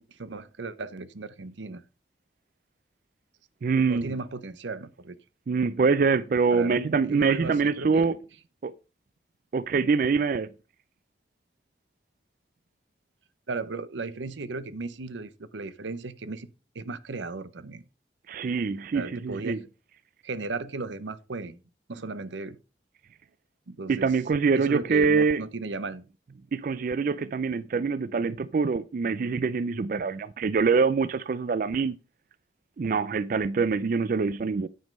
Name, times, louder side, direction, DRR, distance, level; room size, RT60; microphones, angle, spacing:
voice 1, 0.0-1.8 3.7-5.2 6.5-8.2 13.5-16.5 16.7-17.8 18.9-19.6 20.2-21.6 21.9-22.6 23.7-24.1 24.5-26.0, right 3 dB, 85° right, 0.7 m, -36 dB
voice 2, 3.6-4.1 5.5-8.2 8.6-8.7 9.5-10.5 18.3-19.6 23.9-25.4 26.5-31.9 32.8-34.7, right 5 dB, 45° right, 0.3 m, -25 dB
9.3 x 5.3 x 5.2 m
head